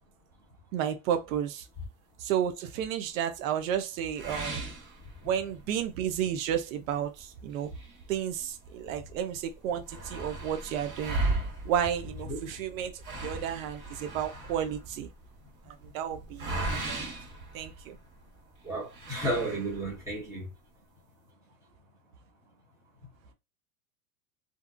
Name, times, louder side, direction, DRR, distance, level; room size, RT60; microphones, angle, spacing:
voice 1, 0.7-1.7 2.2-4.6 5.2-7.7 8.1-11.2 11.6-15.1 15.7-17.0 17.5-18.0, right 9 dB, 80° right, 0.6 m, -32 dB
sound 1, 4.1-5.6 6.1-6.2 6.6-6.7 7.5-8.8 9.2-9.3 9.5-18.2 18.9-20.0, right 2 dB, 30° right, 1.4 m, -36 dB
voice 2, 18.6-20.5, right 1 dB, 5° right, 1.0 m, -32 dB
2.8 x 2.2 x 2.4 m
supercardioid pair, 155°, 40 cm